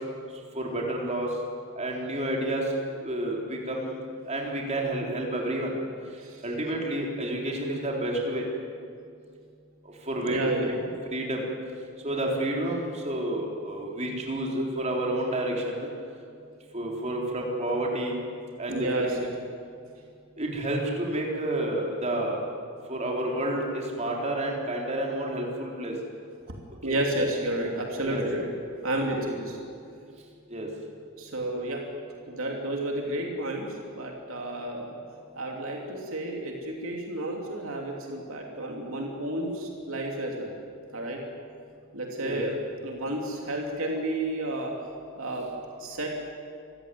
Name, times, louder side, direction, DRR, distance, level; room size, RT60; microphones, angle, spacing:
voice 1, 0.5-1.3 1.8-2.7 3.0-4.0 4.3-5.7 6.4-8.5 10.1-10.7 11.1-11.4 12.0-15.9 16.7-18.2 18.6-19.1 20.4-22.4 22.9-25.9 26.8-27.0 28.0-28.3 29.0-29.2 30.5-30.7 42.2-42.4, right 1 dB, 30° right, -1 dB, 4.0 m, -30 dB
voice 2, 10.2-10.8 18.7-19.3 26.8-28.5 28.8-29.6 31.2-31.8 32.3-33.7 33.9-35.0 35.4-40.5 40.9-41.2 41.9-42.5 42.8-44.7 45.2-45.5 45.8-46.1, right 1 dB, 70° right, 0 dB, 3.0 m, -31 dB
26.5 x 15.5 x 9.4 m, 2.4 s
head